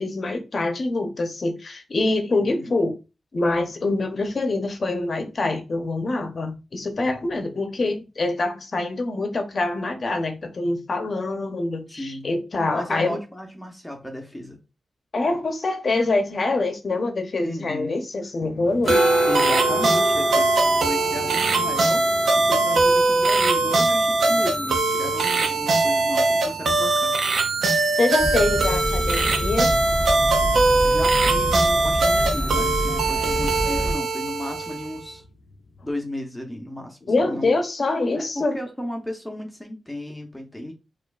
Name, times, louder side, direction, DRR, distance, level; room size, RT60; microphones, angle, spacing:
voice 1, 0.0-2.9 3.3-13.2 15.1-19.0 28.0-29.8 37.1-38.6, left 2 dB, 50° left, 0.8 m, -25 dB
voice 2, 2.4-2.7 11.9-12.3 12.7-14.6 17.4-18.0 19.3-27.2 30.8-35.2 35.8-37.5 38.1-40.7, left 1 dB, 10° left, 0.9 m, -34 dB
sound 1, 18.4-35.9, left 2 dB, 70° left, 0.4 m, -35 dB
sound 2, 18.9-35.0, right 3 dB, 75° right, 0.6 m, -21 dB
sound 3, 28.2-33.9, right 1 dB, 15° right, 1.8 m, -27 dB
4.3 x 2.5 x 2.4 m
cardioid pair, 65°, 0 cm